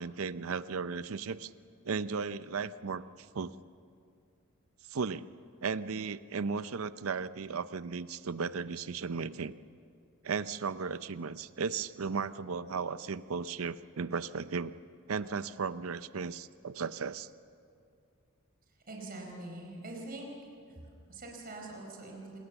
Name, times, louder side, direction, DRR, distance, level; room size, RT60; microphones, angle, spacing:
voice 1, 0.0-1.5 1.8-3.5 4.9-5.3 5.6-9.5 10.2-14.7 15.1-17.3, right 5 dB, 75° right, 14 dB, 0.6 m, -35 dB
voice 2, 18.9-20.3 20.7-22.4, right 2 dB, 45° right, 1 dB, 4.6 m, -44 dB
27.5 x 19.5 x 7.1 m, 2.3 s
head